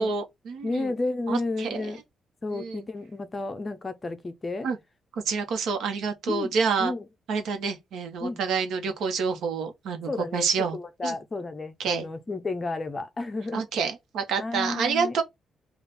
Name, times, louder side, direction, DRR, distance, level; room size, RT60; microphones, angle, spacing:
voice 1, 0.0-0.9 1.3-1.9 2.5-2.9 4.6-4.8 5.1-6.9 7.3-10.8 11.0-11.2 11.8-12.1 13.5-15.2, right 5 dB, 75° right, 1.0 m, -28 dB
voice 2, 0.6-2.0 2.4-4.7 6.3-6.5 6.8-7.1 8.2-8.4 10.1-10.5 10.7-13.6 14.4-15.2, left 3 dB, 20° left, 0.5 m, -32 dB
3.4 x 2.4 x 4.2 m
cardioid pair, 165°, 0 cm